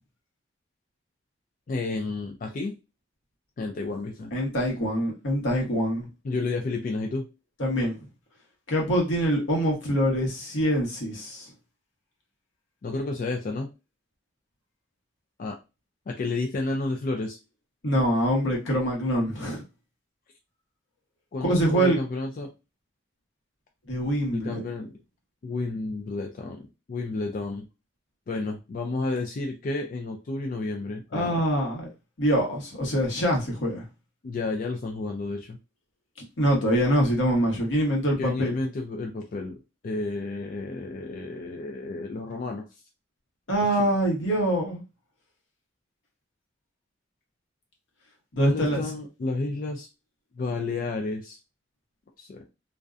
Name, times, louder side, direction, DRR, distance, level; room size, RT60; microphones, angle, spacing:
voice 1, 1.7-2.7 3.6-4.3 6.2-7.3 12.8-13.7 15.4-15.6 16.1-17.4 21.3-22.5 24.3-24.9 25.4-27.7 28.3-31.4 34.2-35.6 38.2-39.6 39.8-42.7 43.7-43.9 48.4-49.9 50.4-51.4 52.2-52.4, left 3 dB, 45° left, 0.3 m, -31 dB
voice 2, 4.3-6.1 7.6-8.0 8.7-11.5 17.8-19.6 21.4-22.0 23.9-24.6 31.1-31.9 32.2-33.8 36.4-38.5 43.5-44.8 48.3-48.8, equal, 85° left, 1.0 m, -24 dB
2.5 x 2.1 x 2.4 m
head